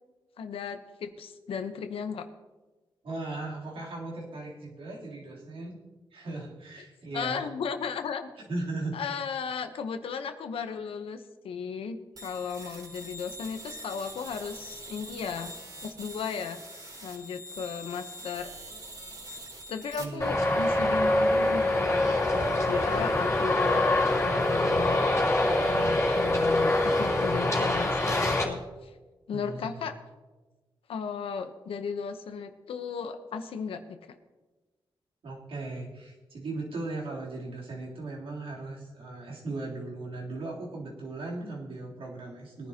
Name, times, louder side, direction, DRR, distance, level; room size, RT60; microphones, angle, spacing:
voice 1, 0.4-2.3 6.8-6.9 7.1-8.3 8.9-15.5 15.8-16.6 17.0-18.5 19.7-23.9 24.2-25.0 25.6-28.9 29.3-30.0 30.9-34.0, left 6 dB, 90° left, 8 dB, 1.0 m, -35 dB
voice 2, 3.0-5.8 6.1-7.4 8.5-9.0 20.0-20.5 29.3-29.9 35.2-42.7, right 2 dB, 75° right, -4 dB, 3.4 m, -37 dB
sound 1, 12.2-20.0, right 1 dB, 45° right, 3.3 m, -44 dB
Traffic noise roadway noise, 20.2-28.4, left 1 dB, 30° left, 2.9 m, -25 dB
21.0 x 10.5 x 2.9 m, 1.2 s
cardioid pair, 90°, 9 cm